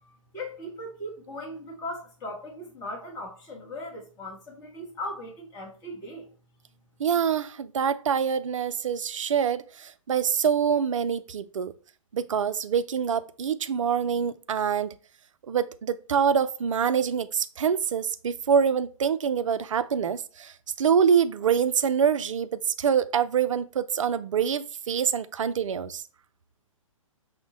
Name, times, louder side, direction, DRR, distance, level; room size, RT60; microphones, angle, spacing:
voice 1, 0.0-6.3, left 1 dB, 20° left, 1.1 m, -38 dB
voice 2, 7.0-11.7 12.1-14.9 15.5-26.0, right 7 dB, 65° right, 0.4 m, -25 dB
6.0 x 2.1 x 3.8 m
figure-of-eight pair, 125°, 17 cm